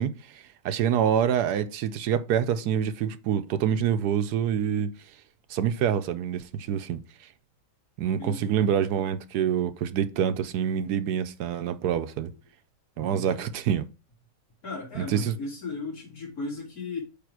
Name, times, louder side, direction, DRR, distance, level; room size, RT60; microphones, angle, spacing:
voice 1, 0.0-4.9 5.5-7.0 8.0-12.3 13.0-13.9 15.0-15.3, right 8 dB, 80° right, 1.2 m, -26 dB
voice 2, 8.2-8.6 13.0-13.5 14.6-17.0, left 2 dB, 60° left, 3.9 m, -36 dB
8.5 x 3.6 x 4.7 m
omnidirectional pair, 1.8 m